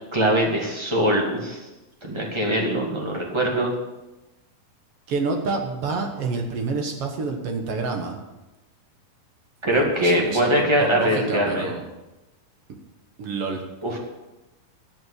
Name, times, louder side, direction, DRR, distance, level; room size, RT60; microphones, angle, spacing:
voice 1, 0.1-1.6 2.0-3.7 9.6-11.7 13.8-14.0, equal, 20° right, -1 dB, 0.8 m, -22 dB
voice 2, 5.1-8.2 9.7-11.8 13.2-13.6, right 4 dB, 55° right, 3 dB, 1.8 m, -28 dB
12.5 x 6.1 x 7.9 m, 1.0 s
omnidirectional pair, 3.9 m